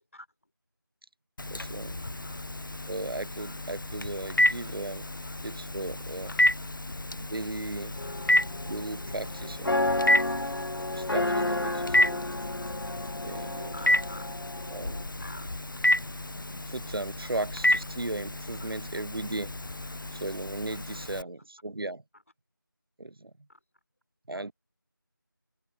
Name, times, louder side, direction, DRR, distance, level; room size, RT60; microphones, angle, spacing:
Telephone, 1.4-21.2, left 1 dB, 65° left, 0.7 m, -30 dB
voice 1, 1.5-2.0 2.9-5.0 5.4-6.4 7.2-8.0 8.7-9.9 10.9-11.7 12.1-12.2 13.2-13.7 14.7-15.1 16.7-19.5 20.1-22.0 23.0-23.3 24.3-24.5, right 2 dB, 90° right, 0.8 m, -36 dB
voice 2, 2.0-2.4 3.4-5.5 5.9-6.8 7.8-8.5 9.2-10.3 12.0-12.2 12.6-12.7 13.2-14.3 15.2-15.5 17.2-17.3 18.5-19.1 19.8-20.0 20.7-21.3 22.1-22.2 23.5-23.6, left 1 dB, 40° left, 3.7 m, -52 dB
sound 1, 8.0-15.0, left 2 dB, 85° left, 1.1 m, -32 dB
open air
figure-of-eight pair, 180°, 12 cm